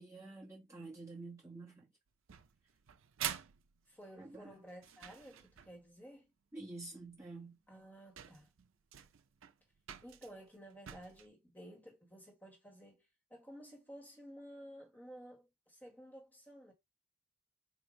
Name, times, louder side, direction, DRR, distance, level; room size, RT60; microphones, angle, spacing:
voice 1, 0.0-1.9 4.2-4.6 6.5-7.6, right 3 dB, 15° right, 1.4 m, -49 dB
sound 1, 2.3-5.9 7.2-7.3 7.9-8.0 8.2-11.3, right 10 dB, 75° right, 0.5 m, -47 dB
voice 2, 3.9-6.3 7.7-8.5 10.0-13.0 13.3-16.7, equal, 10° left, 1.6 m, -54 dB
5.0 x 2.6 x 3.8 m
head